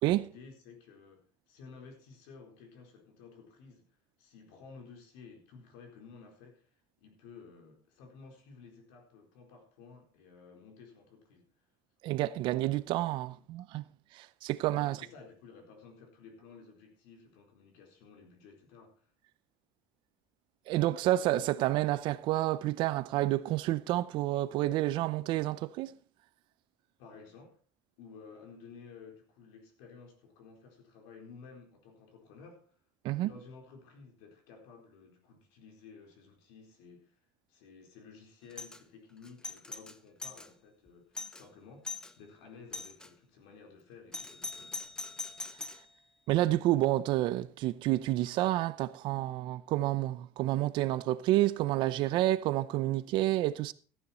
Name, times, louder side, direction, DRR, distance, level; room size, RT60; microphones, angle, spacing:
voice 1, 0.2-3.9 4.2-11.5 14.8-19.1 27.0-27.6 28.0-32.7 33.1-37.2 37.5-44.8, left 5 dB, 85° left, 4.3 m, -54 dB
voice 2, 12.0-13.8 14.1-15.0 20.7-25.9 33.0-33.3 46.3-53.7, right 15 dB, 50° right, 0.6 m, -29 dB
Doorbell, 38.5-38.8 39.2-40.5 40.9-41.0 41.1-41.4 41.8-42.1 42.7-43.1 44.1-45.9, left 3 dB, 5° left, 0.5 m, -41 dB
14.5 x 9.7 x 4.4 m
cardioid pair, 175°, 11 cm